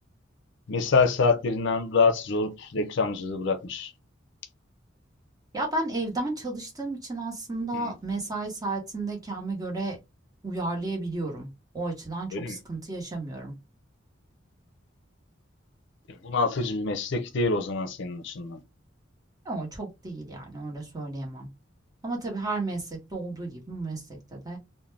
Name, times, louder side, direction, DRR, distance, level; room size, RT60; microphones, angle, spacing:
voice 1, 0.7-3.9 7.7-7.9 12.3-12.6 16.2-18.6, left 4 dB, 65° left, 0.5 m, -26 dB
voice 2, 5.5-10.0 10.4-11.5 11.7-13.5 19.4-21.5 22.0-24.6, right 2 dB, 20° right, 1.0 m, -33 dB
2.5 x 2.1 x 3.2 m
head